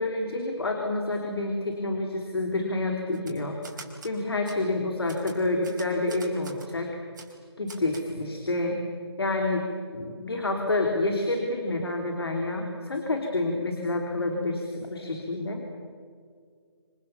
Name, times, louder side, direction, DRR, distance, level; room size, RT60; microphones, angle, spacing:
voice 1, 0.0-3.6 4.0-6.9 7.6-8.8 9.2-9.6 9.9-15.6, left 2 dB, 65° left, 2 dB, 3.9 m, -28 dB
Typewriter, 3.1-4.1 4.5-4.6 5.1-6.7 7.1-7.3 7.7-8.1, right 4 dB, 45° right, 4.5 m, -45 dB
27.5 x 27.0 x 7.1 m, 2.1 s
figure-of-eight pair, 150°, 14 cm